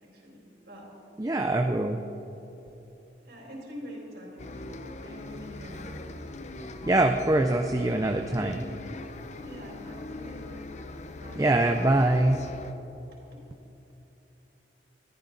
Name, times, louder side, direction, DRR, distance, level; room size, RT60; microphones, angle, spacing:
voice 1, 0.1-0.9 3.2-6.1 9.4-10.7 11.1-11.5 13.3-13.4, equal, 60° right, -3 dB, 4.2 m, -45 dB
voice 2, 1.2-2.0 6.8-8.6 11.4-12.4, right 2 dB, 20° right, 4 dB, 0.5 m, -23 dB
Bus, 4.4-12.7, left 2 dB, 40° left, 0.7 m, -41 dB
21.5 x 14.5 x 4.0 m, 3.0 s
head